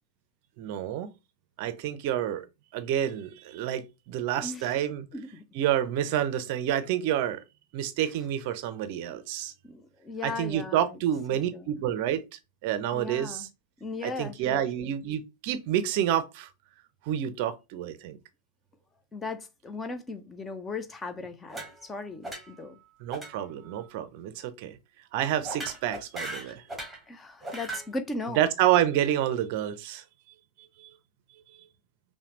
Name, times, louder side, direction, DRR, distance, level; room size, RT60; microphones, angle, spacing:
voice 1, 0.6-1.1 1.6-2.4 2.7-5.1 5.5-7.4 7.7-9.5 10.2-12.2 12.6-13.5 14.0-16.5 17.1-18.2 23.0-24.8 25.1-26.6 28.4-30.0 30.8-30.9, right 11 dB, 45° right, 0.6 m, -28 dB
voice 2, 5.1-5.4 9.6-11.0 11.3-11.7 12.9-13.5 13.8-14.9 19.1-22.8 27.1-28.5, left 3 dB, 15° left, 0.6 m, -37 dB
sound 1, 21.5-22.0 22.2-22.7 23.1-23.3 23.6-23.9 25.4-27.0 27.4-27.9, right 2 dB, ahead, 1.4 m, -38 dB
5.6 x 2.2 x 3.0 m
figure-of-eight pair, 90°, 0 cm